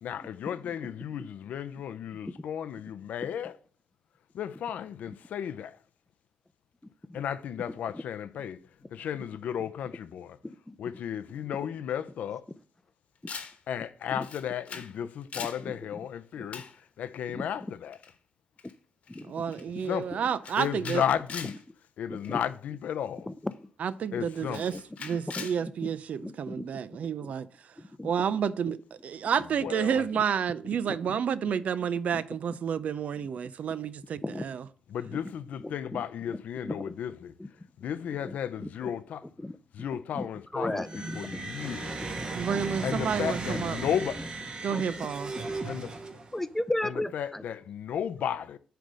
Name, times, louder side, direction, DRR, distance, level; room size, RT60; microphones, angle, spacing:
voice 1, 0.0-3.6 4.3-5.8 7.1-8.6 8.9-10.4 10.8-12.4 13.7-16.6 17.0-18.0 19.8-20.2 20.6-21.6 22.0-23.3 24.1-24.8 29.6-30.1 34.9-37.3 37.8-39.2 39.7-40.8 41.1-41.9 42.8-44.2 45.6-45.9 46.8-48.6, left 9 dB, 85° left, 0.6 m, -34 dB
voice 2, 10.4-10.8 13.2-13.3 15.6-15.7 16.4-16.5 17.3-17.5 19.1-19.3 22.1-22.4 23.3-23.5 25.4-25.5 26.2-26.6 27.2-27.3 27.8-28.1 32.1-32.2 34.2-34.4 35.1-35.2 35.6-36.0 36.6-36.8 37.4-37.5 38.2-38.4 38.6-38.9 39.4-39.6 40.2-40.3 40.5-41.2 41.6-41.8 42.2-42.3 43.5-43.6 44.7-45.1 46.3-47.4, left 1 dB, 10° left, 0.6 m, -35 dB
Camera, 13.3-13.6 14.2-15.0 15.2-15.6 16.5-16.8 17.9-18.1 18.6-18.7 19.1-19.2 19.5-19.8 20.4-21.6 22.2-22.5 23.5-23.6 24.5-25.6, left 6 dB, 65° left, 1.2 m, -41 dB
voice 3, 19.3-21.0 23.8-24.7 25.0-27.5 28.0-28.8 29.0-34.7 42.3-43.8 44.6-45.3, right 7 dB, 70° right, 0.5 m, -30 dB
sound 1, 40.8-46.5, right 3 dB, 40° right, 1.3 m, -36 dB
9.1 x 3.5 x 6.4 m
cardioid pair, 80°, 3 cm